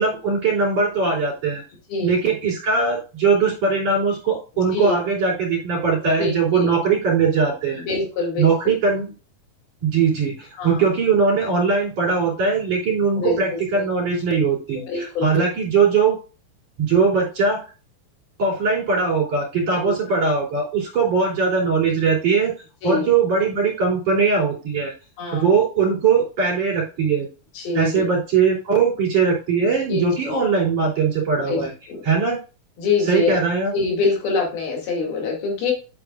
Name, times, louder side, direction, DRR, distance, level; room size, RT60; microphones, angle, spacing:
voice 1, 0.0-1.6 2.0-7.8 8.4-9.1 9.8-16.2 16.8-17.6 18.4-22.5 22.8-24.9 25.3-27.3 27.7-31.7 32.0-32.4 33.0-33.7, right 5 dB, 50° right, -1 dB, 4.4 m, -20 dB
voice 2, 6.2-6.7 7.7-8.7 10.6-10.8 13.2-13.4 13.7-13.9 14.9-15.4 19.8-19.9 22.8-23.1 25.2-25.5 27.5-28.1 29.9-30.4 31.5-32.0 32.8-33.4 33.7-35.7, left 4 dB, 85° left, 0 dB, 4.3 m, -25 dB
9.1 x 8.1 x 2.4 m, 0.34 s
omnidirectional pair, 4.2 m